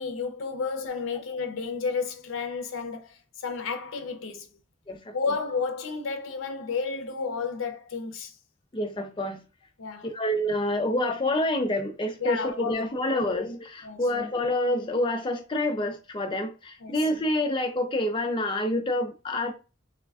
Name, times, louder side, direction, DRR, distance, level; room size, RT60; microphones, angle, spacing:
voice 1, 0.0-4.5 5.1-8.4 9.8-10.1 12.2-12.8 13.1-13.3 13.8-14.0 16.8-17.0, left 5 dB, 80° left, 0.5 m, -32 dB
voice 2, 8.7-9.4 10.0-19.5, left 1 dB, 25° left, 0.4 m, -27 dB
3.3 x 2.1 x 2.4 m
head